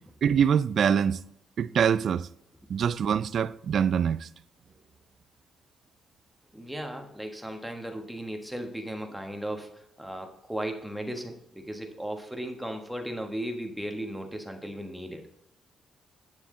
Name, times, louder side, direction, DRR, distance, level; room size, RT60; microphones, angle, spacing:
voice 1, 0.2-1.2 1.6-2.3 2.7-4.3, right 7 dB, 55° right, 0.4 m, -24 dB
voice 2, 6.5-15.2, right 1 dB, ahead, 1.3 m, -36 dB
9.5 x 7.1 x 3.8 m
cardioid pair, 115°, 0 cm